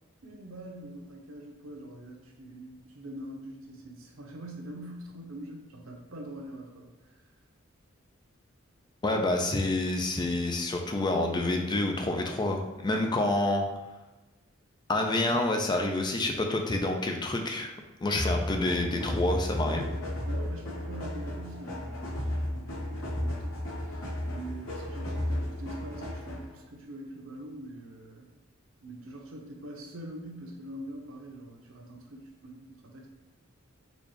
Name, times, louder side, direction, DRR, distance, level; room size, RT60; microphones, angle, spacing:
voice 1, 0.2-6.9 20.2-28.3 28.8-33.1, right 1 dB, 90° right, 1 dB, 0.7 m, -44 dB
voice 2, 9.0-13.6 14.9-17.7 18.0-19.9, left 2 dB, 20° left, 3 dB, 0.4 m, -28 dB
sound 1, 18.1-26.6, left 1 dB, 85° left, 1.2 m, -33 dB
4.0 x 2.3 x 3.2 m, 1.1 s
head